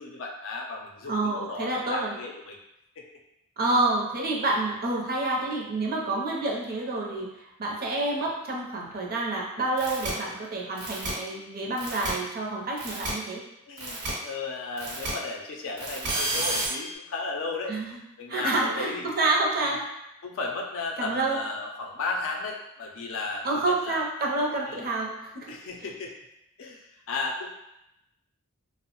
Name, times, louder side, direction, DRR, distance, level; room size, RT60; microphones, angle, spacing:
voice 1, 0.0-2.6 3.0-3.1 13.1-13.2 13.7-17.8 18.2-19.1 20.2-24.0 24.7-24.8 25.5-26.1 26.6-27.5, left 3 dB, 65° left, 0 dB, 0.5 m, -34 dB
voice 2, 1.1-2.2 3.6-13.4 17.7-18.0 18.3-19.8 21.0-21.4 23.4-25.5, right 2 dB, 45° right, -2 dB, 0.5 m, -28 dB
sound 1, 9.8-10.1 10.8-11.1 11.8-12.1 12.8-13.1 13.8-14.1 14.8-15.1 15.8-16.7, right 1 dB, 75° right, 0.9 m, -31 dB
3.0 x 2.0 x 2.9 m, 0.88 s
head